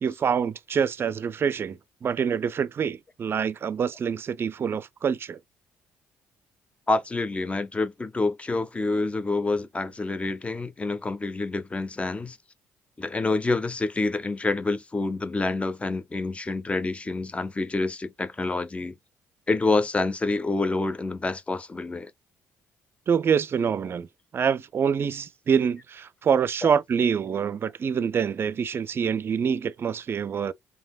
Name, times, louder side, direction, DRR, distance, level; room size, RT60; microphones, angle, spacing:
voice 1, 0.0-5.4 23.1-24.1 24.3-30.5, right 7 dB, 45° right, 0.4 m, -26 dB
voice 2, 6.9-12.4 13.0-19.0 19.5-22.1 26.6-26.7, left 3 dB, 20° left, 0.7 m, -27 dB
3.3 x 2.7 x 2.3 m
supercardioid pair, 70°, 6 cm